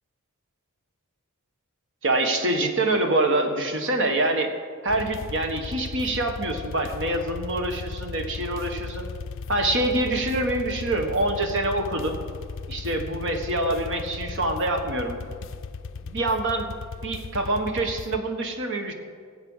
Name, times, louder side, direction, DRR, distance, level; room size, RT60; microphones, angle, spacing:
voice 1, 2.0-4.5 4.8-9.0 9.5-12.2 12.7-15.2 16.0-16.8 17.0-18.9, right 2 dB, 60° right, 5 dB, 1.5 m, -25 dB
sound 1, 4.9-18.2, left 4 dB, 60° left, 0.5 m, -37 dB
20.0 x 8.0 x 5.6 m, 2.1 s
head